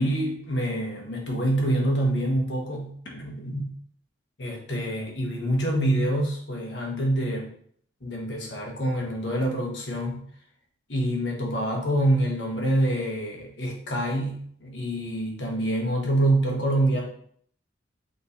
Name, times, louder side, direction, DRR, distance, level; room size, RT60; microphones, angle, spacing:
voice 1, 0.0-3.7 4.4-7.5 8.0-10.2 10.9-17.0, right 1 dB, 70° left, -1 dB, 1.1 m, -26 dB
5.1 x 3.2 x 2.6 m, 0.62 s
head